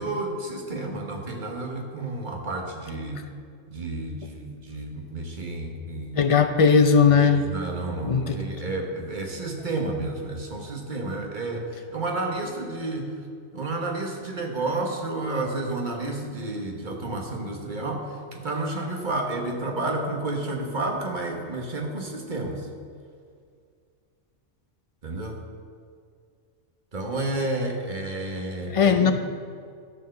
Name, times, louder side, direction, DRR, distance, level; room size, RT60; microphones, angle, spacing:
voice 1, 0.0-3.2 3.7-6.3 7.1-13.1 13.5-22.7 25.0-25.4 26.9-29.1, right 2 dB, 45° right, 2 dB, 1.3 m, -31 dB
voice 2, 6.2-7.4 8.0-8.4 28.7-29.1, left 6 dB, 50° left, 8 dB, 0.4 m, -18 dB
12.5 x 4.7 x 6.5 m, 2.2 s
omnidirectional pair, 1.2 m